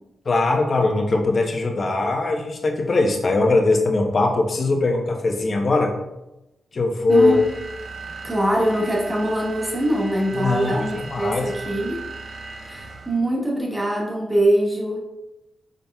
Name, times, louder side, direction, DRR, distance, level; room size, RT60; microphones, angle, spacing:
voice 1, 0.2-5.9 6.7-7.4 10.3-11.5, left 3 dB, 55° left, 1 dB, 0.9 m, -20 dB
voice 2, 7.1-7.5 8.2-12.1 12.7-15.0, right 1 dB, 15° right, -2 dB, 1.2 m, -23 dB
sound 1, 7.1-13.3, right 4 dB, 70° right, 0.8 m, -37 dB
5.2 x 4.1 x 2.3 m, 0.93 s
cardioid pair, 60°, 0 cm